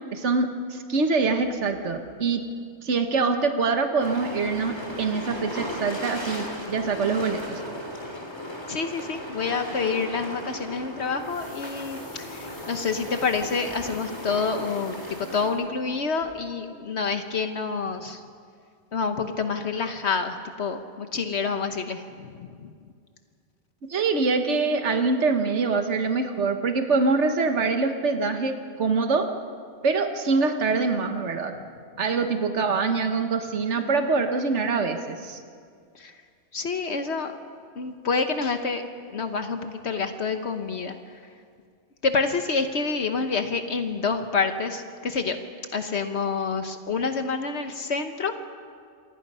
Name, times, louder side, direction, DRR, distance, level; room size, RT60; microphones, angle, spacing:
voice 1, 0.1-2.5 2.8-7.6 23.9-29.3 29.8-31.5 32.0-35.4, right 4 dB, 80° right, 6 dB, 1.6 m, -24 dB
sound 1, 4.0-15.5, equal, 20° left, 3.3 m, -36 dB
voice 2, 8.7-18.2 18.9-22.7 35.9-36.2 36.5-37.3 37.7-38.8 39.1-41.2 42.0-45.4 45.7-48.3, left 4 dB, 70° left, 7 dB, 1.3 m, -28 dB
sound 2, 11.1-15.9 16.2-16.3, left 1 dB, 45° left, 7.7 m, -51 dB
27.5 x 24.5 x 5.6 m, 2.2 s
omnidirectional pair, 1.2 m